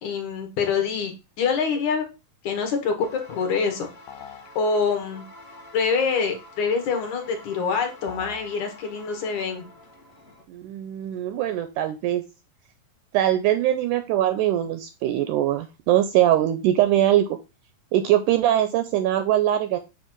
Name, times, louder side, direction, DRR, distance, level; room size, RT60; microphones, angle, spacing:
voice 1, 0.0-2.1 2.4-3.9 4.6-5.2 5.7-9.7, left 5 dB, 65° left, 4 dB, 2.4 m, -25 dB
sound 1, 3.0-10.4, left 1 dB, 40° left, 0.9 m, -47 dB
sound 2, 4.1-4.5 8.1-8.5, left 9 dB, 85° left, 1.6 m, -41 dB
voice 2, 10.5-12.2 13.1-17.3 17.9-19.8, right 12 dB, 80° right, 9 dB, 1.8 m, -22 dB
7.3 x 3.1 x 5.9 m, 0.28 s
omnidirectional pair, 4.0 m